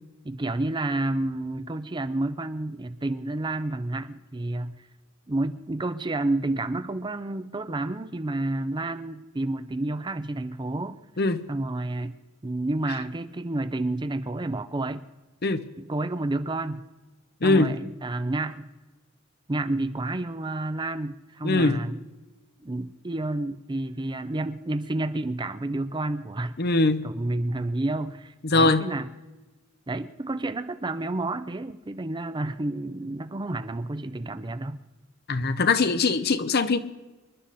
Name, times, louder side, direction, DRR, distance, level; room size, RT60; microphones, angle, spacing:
voice 1, 0.2-4.8 5.3-11.0 11.5-12.1 12.4-15.1 15.8-16.8 17.4-18.7 19.5-22.0 22.6-26.6 27.0-29.1 29.9-34.8, right 2 dB, 25° right, 0.6 m, -30 dB
voice 2, 17.4-17.8 21.4-21.8 26.6-27.1 28.4-28.9 35.3-36.8, left 3 dB, 50° left, 0.8 m, -22 dB
26.0 x 11.5 x 4.2 m
head